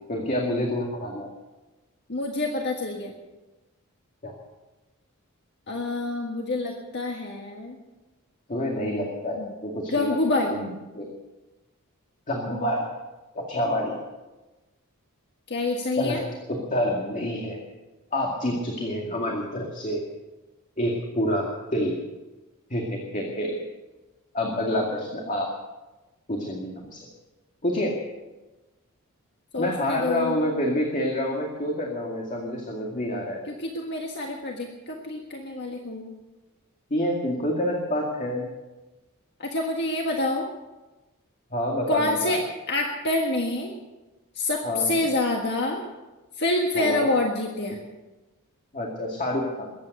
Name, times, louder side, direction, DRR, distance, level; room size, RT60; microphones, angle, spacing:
voice 1, 0.1-1.3 4.2-4.3 8.5-10.7 10.9-11.1 12.3-12.9 13.3-13.9 16.0-16.2 16.5-17.6 18.1-20.0 20.8-21.4 21.7-22.0 22.7-23.6 24.3-25.5 26.3-27.0 27.6-27.9 29.6-33.4 36.9-38.5 41.5-42.4 44.6-45.0 46.8-47.1 48.7-49.7, left 1 dB, 35° left, -1 dB, 2.2 m, -27 dB
voice 2, 2.1-3.1 5.7-7.8 9.3-9.5 9.9-10.5 15.5-16.2 29.5-30.3 33.5-36.1 39.4-40.5 41.9-42.4 42.7-43.7 44.3-45.8 46.4-47.8, left 2 dB, 50° left, 1 dB, 1.6 m, -27 dB
22.0 x 9.5 x 6.6 m, 1.1 s
head